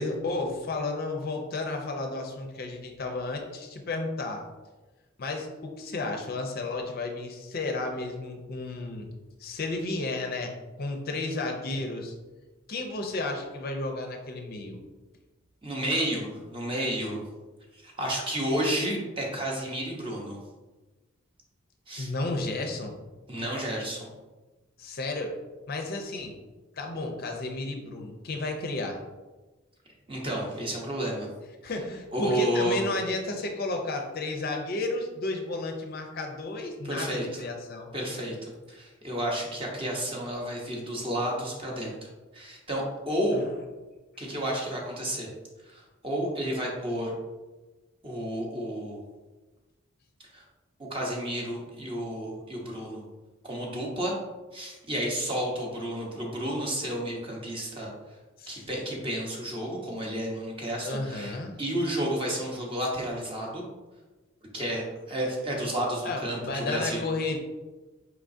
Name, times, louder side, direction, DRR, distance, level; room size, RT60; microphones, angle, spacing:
voice 1, 0.0-4.4 5.2-9.1 9.4-12.1 12.7-14.8 22.0-23.0 24.8-25.3 25.7-26.3 26.7-29.0 31.6-37.9 43.3-43.5 58.4-58.6 60.8-61.6 66.0-67.4, left 2 dB, 45° left, 3 dB, 0.5 m, -32 dB
voice 2, 15.6-17.2 17.7-20.4 21.9-22.1 23.3-24.1 30.1-31.3 32.1-32.8 36.8-37.2 37.9-43.4 44.2-45.3 45.6-47.1 48.0-49.0 50.3-50.4 50.8-53.0 53.4-54.2 54.5-57.9 58.5-63.6 64.5-67.0, right 1 dB, 25° right, -2 dB, 0.8 m, -31 dB
4.8 x 3.5 x 2.6 m, 1.2 s
head